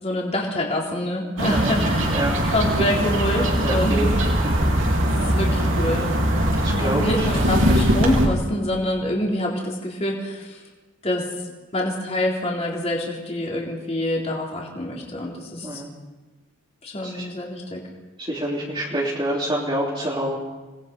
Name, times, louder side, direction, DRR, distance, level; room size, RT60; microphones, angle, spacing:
voice 1, 0.0-4.1 5.0-6.1 6.7-10.6 11.0-11.3 11.7-15.8 16.8-17.8, left 1 dB, 30° left, -2 dB, 3.9 m, -26 dB
sound 1, 1.4-8.3, equal, 65° right, 4.6 m, -21 dB
voice 2, 3.6-4.1 4.4-4.7 6.6-7.4 15.6-15.9 17.0-17.2 18.3-20.4, right 1 dB, 25° right, -4 dB, 3.1 m, -27 dB
28.5 x 20.5 x 5.4 m, 1.2 s
head